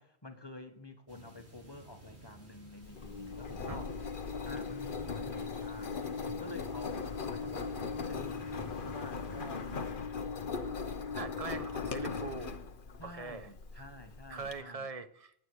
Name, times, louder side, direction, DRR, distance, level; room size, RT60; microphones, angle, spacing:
voice 1, 0.0-4.0 4.4-9.9 13.0-14.9, left 2 dB, 25° left, 1.4 m, -49 dB
sound 1, 1.1-9.9, right 1 dB, 80° right, 3.7 m, -53 dB
Engine, 2.8-14.5, left 5 dB, 55° left, 1.2 m, -39 dB
voice 2, 11.1-12.6 13.0-13.5 13.8-13.9 14.3-15.3, right 4 dB, 35° right, 0.9 m, -42 dB
19.0 x 8.5 x 4.8 m
omnidirectional pair, 1.1 m